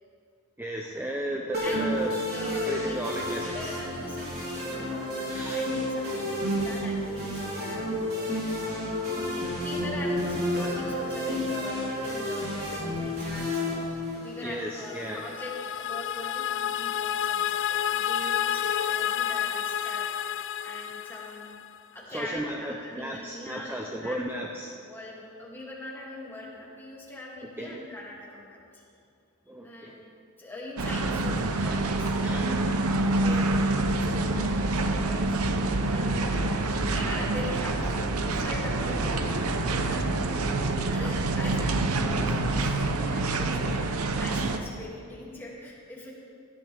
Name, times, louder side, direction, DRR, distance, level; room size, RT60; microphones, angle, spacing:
voice 1, 0.6-2.1 2.5-3.7 5.3-5.6 14.4-15.2 22.1-24.9 27.6-27.8 29.5-30.0 31.6-31.7 32.2-32.5, right 1 dB, 10° right, 1 dB, 0.7 m, -35 dB
sound 1, 1.5-14.6, left 1 dB, 45° right, 3.9 m, -31 dB
voice 2, 1.6-2.0 2.3-3.0 3.3-13.7 14.1-20.1 20.6-21.6 21.9-24.2 24.8-28.8 29.6-30.1 30.4-32.7 33.2-35.5 35.9-36.5 36.9-37.7 38.1-40.1 40.9-46.1, left 1 dB, 10° left, -5 dB, 2.6 m, -42 dB
sound 2, 14.6-21.8, left 10 dB, 60° left, 0.4 m, -30 dB
sound 3, 30.8-44.6, right 2 dB, 75° right, 0.8 m, -27 dB
17.0 x 12.0 x 3.5 m, 2.5 s
head